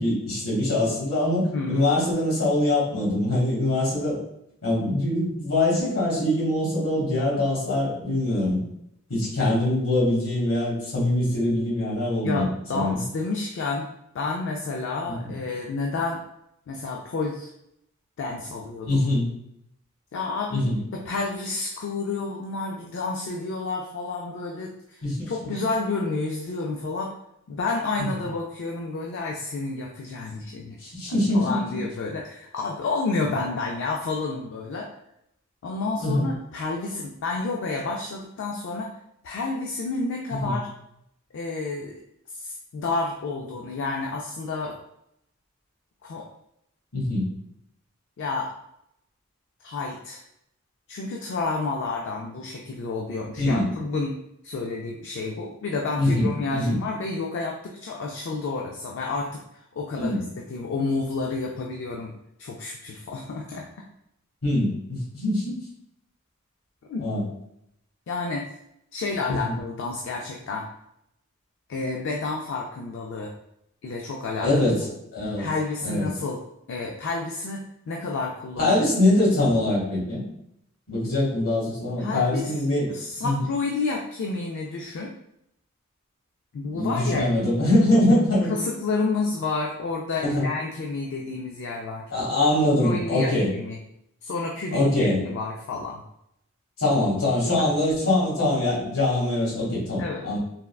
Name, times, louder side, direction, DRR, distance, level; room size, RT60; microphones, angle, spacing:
voice 1, 0.0-4.2 4.6-8.6 9.1-12.5 12.7-13.0 15.1-15.3 18.9-19.3 20.5-20.8 25.0-25.5 30.8-31.6 36.0-36.3 40.4-40.5 46.9-47.3 53.4-53.7 56.0-56.8 59.9-60.2 64.4-65.6 67.0-67.2 69.3-69.6 74.4-74.8 75.1-75.5 75.8-76.1 78.6-80.2 80.9-82.9 83.2-83.4 86.7-88.5 90.2-90.5 92.1-93.5 94.7-95.2 96.8-100.4, left 1 dB, 75° left, -5 dB, 1.3 m, -23 dB
voice 2, 1.5-1.9 12.2-13.9 14.1-16.2 16.7-17.5 18.2-19.0 20.1-27.1 27.5-30.8 31.1-34.9 35.6-38.9 39.2-40.7 41.3-41.9 42.3-44.8 46.0-46.3 48.2-48.5 49.6-50.2 50.9-59.4 59.7-62.1 62.4-63.7 66.9-67.1 68.1-68.5 68.9-70.7 71.7-73.3 73.8-74.5 75.4-76.4 76.7-78.7 82.0-82.5 82.9-85.1 86.5-87.3 88.5-92.1 92.8-93.8 94.2-96.0 97.6-97.7 100.0-100.2, left 3 dB, 60° left, 0 dB, 0.3 m, -30 dB
3.5 x 2.2 x 2.3 m, 0.77 s
head